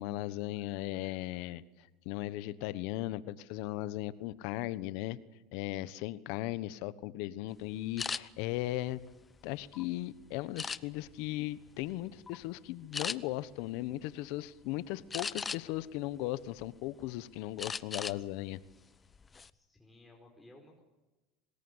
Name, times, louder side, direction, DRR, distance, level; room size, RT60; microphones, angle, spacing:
voice 1, 0.0-5.2 5.5-9.0 9.4-18.6, left 16 dB, 70° left, 16 dB, 1.2 m, -37 dB
sound 1, 8.0-8.2 8.8-9.8 10.6-11.1 11.7-11.9 12.3-12.4 12.9-13.2 15.1-15.8 16.3-17.1 17.6-18.2 18.5-18.7 19.1-19.5, left 5 dB, 20° left, 0.9 m, -38 dB
voice 2, 19.5-20.8, left 1 dB, 5° left, 0 dB, 4.9 m, -57 dB
25.5 x 20.5 x 8.1 m, 1.1 s
supercardioid pair, 110°, 0 cm